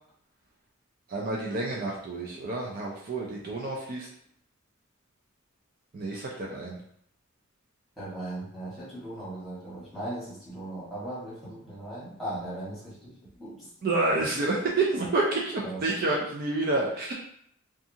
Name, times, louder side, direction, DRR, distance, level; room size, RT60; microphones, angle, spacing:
voice 1, 1.1-4.1 5.9-6.8 13.8-17.1, right 2 dB, 45° right, -2 dB, 0.4 m, -29 dB
voice 2, 8.0-13.1 13.4-13.7 15.6-15.8, right 1 dB, ahead, -10 dB, 1.3 m, -38 dB
2.7 x 2.3 x 2.6 m, 0.67 s
head